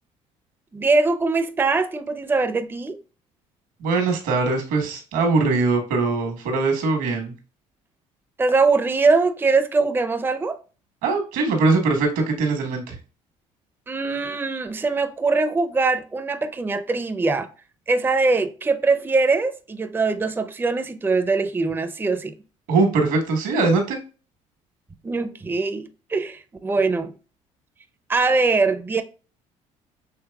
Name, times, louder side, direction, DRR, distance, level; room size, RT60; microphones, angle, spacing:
voice 1, 0.7-3.0 8.4-10.6 13.9-17.5 17.9-22.3 25.0-27.1 28.1-29.0, right 3 dB, 15° right, 0.5 m, -22 dB
voice 2, 3.8-7.3 11.0-13.0 22.7-24.0, right 3 dB, 80° right, 1.4 m, -21 dB
6.4 x 3.2 x 2.3 m
supercardioid pair, 75°, 15 cm